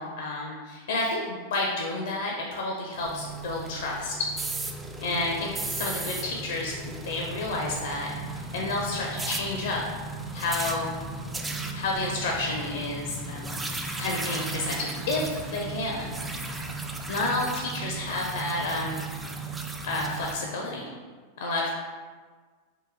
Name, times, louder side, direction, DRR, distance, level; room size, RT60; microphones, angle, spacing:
voice 1, 0.0-4.3 5.0-5.5 5.8-8.1 8.5-9.8 10.3-11.0 11.7-13.5 14.0-16.1 17.1-19.0 19.8-20.9 21.4-21.7, left 2 dB, 60° left, 0 dB, 0.5 m, -30 dB
sound 1, 2.9-20.4, right 3 dB, 10° right, 0.3 m, -35 dB
3.8 x 2.5 x 3.6 m, 1.5 s
figure-of-eight pair, 90°, 0 cm